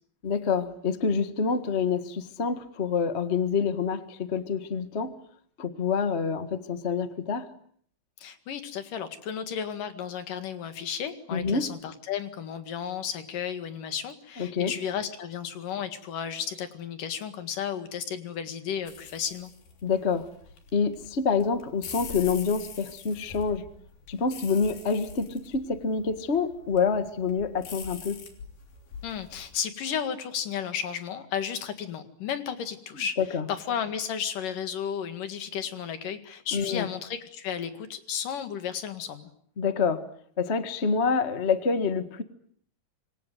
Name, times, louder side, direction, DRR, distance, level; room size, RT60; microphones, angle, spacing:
voice 1, 0.2-5.1 5.6-7.5 11.3-11.7 14.4-14.7 19.8-20.3 20.7-23.7 24.1-28.2 33.2-33.5 36.5-36.9 39.6-40.0 40.4-42.2, left 5 dB, 50° left, 0.8 m, -27 dB
voice 2, 8.2-19.5 29.0-33.2 33.5-39.3, left 8 dB, 65° left, 3.4 m, -33 dB
sound 1, 18.9-29.6, left 6 dB, 80° left, 5.3 m, -45 dB
26.5 x 24.0 x 9.3 m
omnidirectional pair, 4.2 m